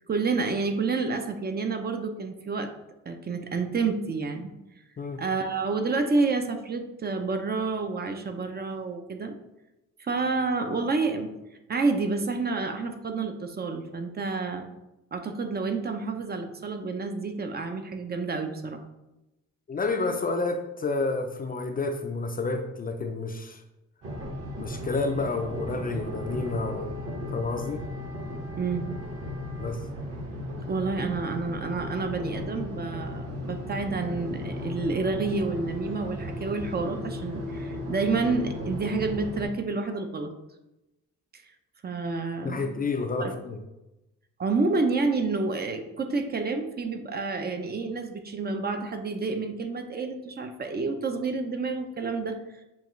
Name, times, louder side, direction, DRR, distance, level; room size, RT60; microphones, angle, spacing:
voice 1, 0.1-2.7 3.1-4.5 5.2-9.3 10.0-11.3 11.7-14.7 15.1-18.8 28.6-28.9 30.7-40.3 41.3-41.4 41.8-42.7 43.2-43.3 44.4-52.6, right 4 dB, 30° right, 6 dB, 0.5 m, -29 dB
voice 2, 19.7-23.6 24.6-26.9 27.3-27.8 29.6-29.8 42.4-43.6, left 3 dB, 30° left, 6 dB, 0.4 m, -30 dB
sound 1, 24.0-39.5, left 1 dB, 50° right, 1.3 m, -36 dB
7.1 x 2.4 x 3.1 m, 0.97 s
cardioid pair, 90°, 30 cm